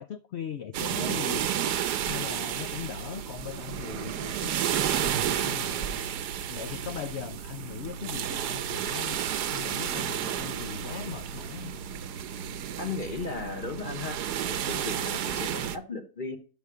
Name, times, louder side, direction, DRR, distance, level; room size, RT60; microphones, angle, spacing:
voice 1, 0.0-1.5 2.0-6.0 6.5-9.2 9.5-11.7, left 9 dB, 70° left, 11 dB, 0.6 m, -39 dB
sound 1, 0.7-15.8, right 9 dB, 75° right, 1.3 m, -31 dB
voice 2, 12.8-16.4, left 4 dB, 35° left, 7 dB, 1.1 m, -36 dB
12.0 x 5.5 x 4.9 m, 0.38 s
omnidirectional pair, 1.8 m